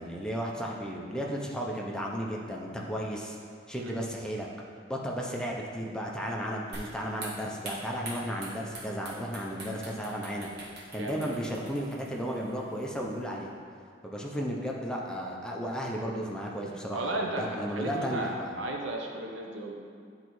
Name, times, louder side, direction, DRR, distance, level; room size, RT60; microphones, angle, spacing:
voice 1, 0.0-3.4 3.7-4.5 4.9-10.5 10.9-13.5 14.0-18.7, equal, 5° left, -2 dB, 0.5 m, -34 dB
sound 1, 6.7-13.3, right 2 dB, 55° right, 1.3 m, -45 dB
voice 2, 11.0-11.4 16.9-19.7, right 1 dB, 75° right, 1 dB, 0.8 m, -35 dB
9.6 x 4.0 x 3.1 m, 2.3 s
head